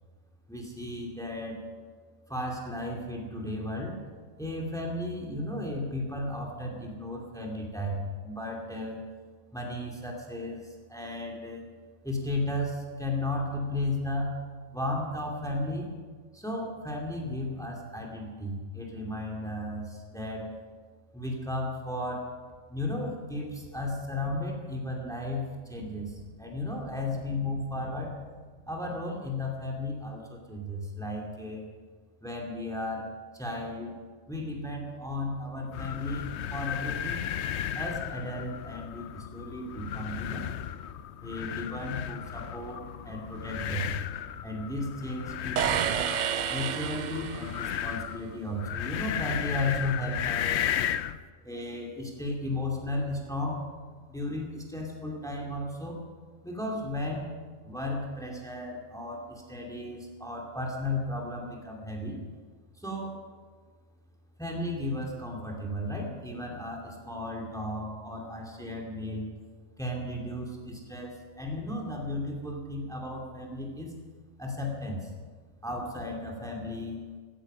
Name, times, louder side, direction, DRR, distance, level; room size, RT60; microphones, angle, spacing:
voice 1, 0.5-1.6 2.3-4.0 4.4-9.0 9.5-11.6 12.0-14.4 14.7-15.9 16.3-20.5 21.1-22.3 22.7-28.2 28.7-31.6 32.2-33.1 33.3-34.0 34.3-37.2 37.7-40.5 41.2-44.0 44.4-46.1 46.5-50.8 51.4-53.6 54.1-56.0 56.4-57.3 57.6-62.2 62.8-63.3 64.4-69.3 69.8-73.9 74.4-75.1 75.6-77.0, left 1 dB, ahead, -1 dB, 2.5 m, -34 dB
sound 1, 35.7-51.2, left 10 dB, 65° left, 0.8 m, -35 dB
sound 2, 45.6-47.8, right 9 dB, 80° right, 0.4 m, -30 dB
16.5 x 14.5 x 5.6 m, 1.5 s
omnidirectional pair, 1.4 m